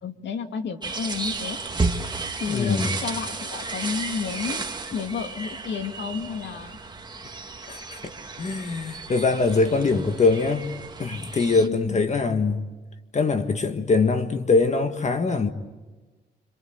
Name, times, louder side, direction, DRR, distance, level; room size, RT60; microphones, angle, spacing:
voice 1, 0.0-1.6 2.4-6.8 11.6-12.1, left 6 dB, 65° left, 2.3 m, -31 dB
sound 1, 0.8-11.7, right 3 dB, 20° right, 2.0 m, -33 dB
voice 2, 2.5-2.9 7.7-8.1 8.4-10.7 11.0-12.6 13.1-15.5, left 4 dB, 35° left, 1.7 m, -23 dB
27.0 x 26.0 x 8.1 m
cardioid pair, 90°, 20 cm